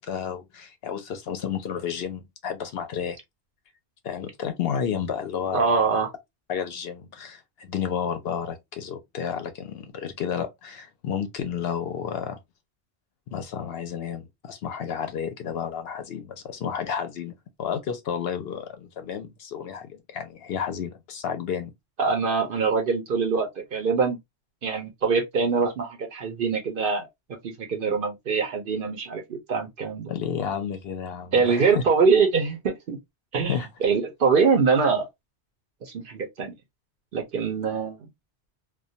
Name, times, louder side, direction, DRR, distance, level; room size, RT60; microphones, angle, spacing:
voice 1, 0.0-3.2 4.0-5.9 6.5-12.4 13.3-17.3 17.6-21.7 30.1-31.8 33.4-33.7, left 7 dB, 65° left, 0.7 m, -31 dB
voice 2, 5.5-6.1 22.0-24.2 24.6-27.1 27.4-30.1 31.3-33.0 33.3-35.1 35.8-36.5 37.1-38.0, right 5 dB, 60° right, 0.7 m, -24 dB
2.3 x 2.1 x 2.6 m
omnidirectional pair, 1.2 m